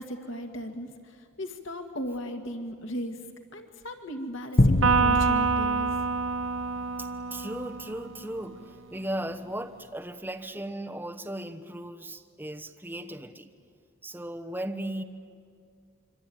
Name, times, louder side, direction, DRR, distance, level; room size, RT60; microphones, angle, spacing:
voice 1, 0.0-3.3 3.5-6.0, equal, 70° left, 4 dB, 2.0 m, -36 dB
sound 1, 4.6-7.2, left 1 dB, 45° left, 1.0 m, -26 dB
Electric guitar, 4.8-8.4, right 4 dB, 70° right, 0.9 m, -27 dB
voice 2, 7.0-13.5 14.0-15.0, right 1 dB, 10° right, 4 dB, 1.0 m, -37 dB
25.5 x 24.5 x 9.4 m, 2.2 s
head